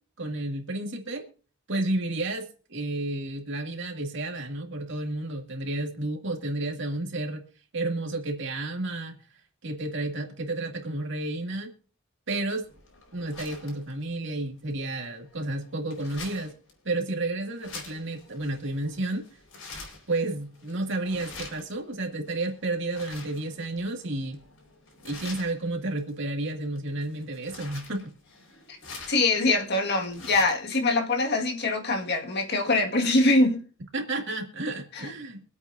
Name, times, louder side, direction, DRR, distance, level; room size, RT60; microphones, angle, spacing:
voice 1, 0.2-1.3 1.7-7.4 7.7-9.2 9.6-11.7 12.3-12.7 13.1-16.5 16.8-19.3 20.1-24.4 25.0-28.1 33.9-35.4, right 2 dB, 60° right, 2.3 m, -31 dB
sound 1, 12.6-30.7, left 3 dB, 80° left, 4.7 m, -47 dB
voice 2, 29.1-33.6 34.9-35.1, left 2 dB, 55° left, 1.6 m, -23 dB
25.0 x 8.4 x 2.5 m
head